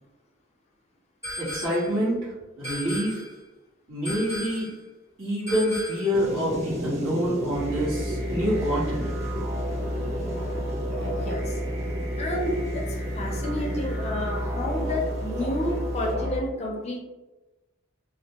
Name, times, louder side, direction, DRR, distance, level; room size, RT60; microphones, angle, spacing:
sound 1, 1.2-2.0 2.6-3.4 4.0-4.8 5.5-6.2, equal, 15° right, 1.1 m, -36 dB
voice 1, 1.4-3.2 3.9-4.7 5.2-9.1, equal, 75° right, -9 dB, 1.2 m, -27 dB
sound 2, 6.1-16.1, right 1 dB, 35° right, 0.4 m, -35 dB
sound 3, 7.5-16.4, equal, 55° right, 0.8 m, -31 dB
voice 2, 11.1-11.6 12.2-12.6 12.9-17.0, left 1 dB, 35° left, -1 dB, 0.4 m, -30 dB
2.4 x 2.1 x 2.8 m, 1.1 s
head